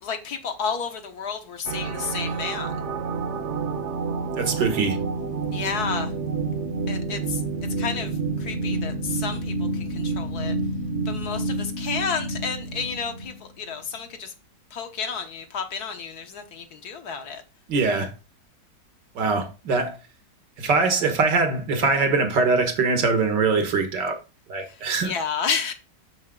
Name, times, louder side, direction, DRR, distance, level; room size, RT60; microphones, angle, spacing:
voice 1, 0.0-2.8 5.5-6.1 6.9-7.4 7.8-10.6 11.0-14.3 14.7-17.4 24.6-25.7, left 6 dB, 65° left, 1.5 m, -31 dB
sound 1, 1.6-13.4, right 3 dB, 50° right, 1.0 m, -29 dB
voice 2, 4.4-5.0 17.7-18.1 19.2-20.0 20.6-24.2 24.5-25.1, right 4 dB, 80° right, 2.1 m, -22 dB
6.7 x 6.5 x 3.7 m
omnidirectional pair, 1.9 m